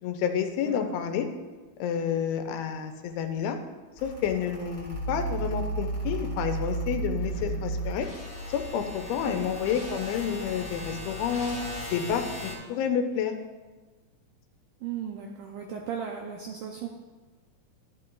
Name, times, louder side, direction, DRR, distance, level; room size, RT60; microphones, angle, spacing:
voice 1, 0.0-1.3 1.8-3.6 4.0-8.1 8.5-11.6 11.9-13.3, left 7 dB, 90° left, 6 dB, 2.6 m, -29 dB
Mechanical fan, 3.9-11.8, left 3 dB, 10° right, 1.3 m, -44 dB
sound 1, 4.9-12.5, right 2 dB, 30° left, 2.9 m, -34 dB
voice 2, 14.8-16.9, right 8 dB, 90° right, 1 dB, 1.8 m, -36 dB
11.0 x 10.5 x 2.4 m, 1.3 s
omnidirectional pair, 4.5 m